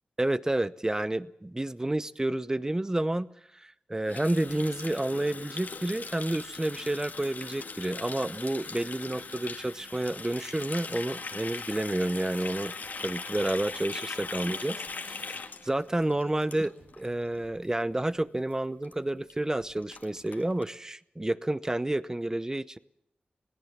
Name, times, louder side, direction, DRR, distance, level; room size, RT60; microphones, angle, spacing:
voice 1, 0.2-3.3 3.5-12.7 13.0-22.8, right 1 dB, 20° right, 16 dB, 0.8 m, -30 dB
Water tap faucet, 4.0-17.1 17.3-17.6 17.9-18.2 18.5-18.6 18.8-18.9 19.3-19.4 19.6-20.7, left 4 dB, 65° left, 2.0 m, -40 dB
C-Greg-rocks, 12.4-17.5, right 2 dB, 65° right, 7.2 m, -58 dB
21.5 x 17.5 x 7.3 m, 0.78 s
wide cardioid pair, 70°, 3 cm